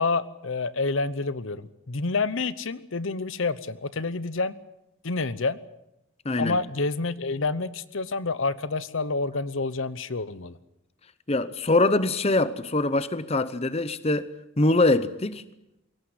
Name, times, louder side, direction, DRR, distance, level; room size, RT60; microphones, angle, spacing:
voice 1, 0.0-4.5 5.0-5.6 6.4-10.6, left 3 dB, 65° left, 0.9 m, -28 dB
voice 2, 6.2-6.6 11.3-14.3 14.6-15.4, left 2 dB, 30° left, 0.8 m, -23 dB
22.0 x 17.5 x 9.6 m
head